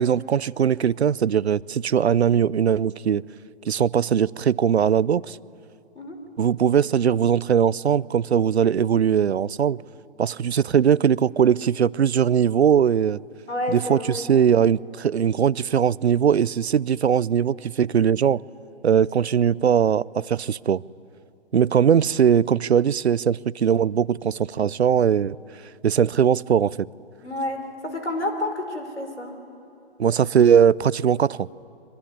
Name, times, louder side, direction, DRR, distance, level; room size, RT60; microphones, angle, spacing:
voice 1, 0.0-3.2 3.7-5.4 6.4-9.8 10.2-13.2 13.7-18.4 18.8-20.8 21.5-25.4 25.8-26.9 30.0-31.5, right 8 dB, 75° right, 0.6 m, -20 dB
voice 2, 13.5-14.3 27.2-29.4, left 1 dB, 85° left, 5.2 m, -29 dB
25.5 x 23.5 x 9.9 m
figure-of-eight pair, 130°, 33 cm